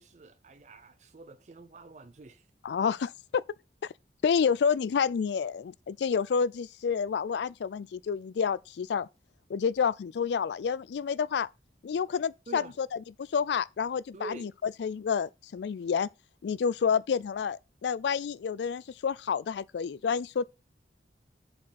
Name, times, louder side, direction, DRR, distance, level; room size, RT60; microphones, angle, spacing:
voice 1, 0.0-2.5 12.5-12.8 14.1-14.6, right 3 dB, 40° right, 0.4 m, -46 dB
voice 2, 2.6-3.4 4.2-9.1 9.5-11.5 11.8-12.9 13.2-14.5 14.8-16.1 16.4-20.4, left 6 dB, 75° left, 0.3 m, -29 dB
7.5 x 4.3 x 5.8 m
head